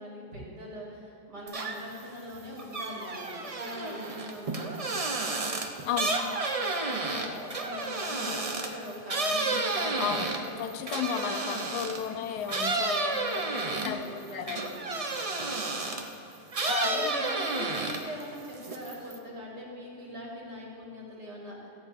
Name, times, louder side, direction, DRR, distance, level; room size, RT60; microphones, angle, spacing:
voice 1, 0.0-4.8 5.8-6.4 6.7-10.6 12.1-12.2 12.9-15.8 16.8-21.6, equal, 75° right, -5 dB, 3.4 m, -42 dB
sound 1, 1.5-2.0 2.3-12.1 12.5-16.1 16.5-18.2 18.5-19.2, right 3 dB, 45° right, 0.4 m, -31 dB
voice 2, 5.8-6.2 10.0-10.3 10.6-13.3 13.8-14.1 14.3-14.6 16.6-17.1, left 9 dB, 75° left, 10 dB, 1.2 m, -33 dB
14.0 x 5.1 x 8.4 m, 2.8 s
omnidirectional pair, 1.8 m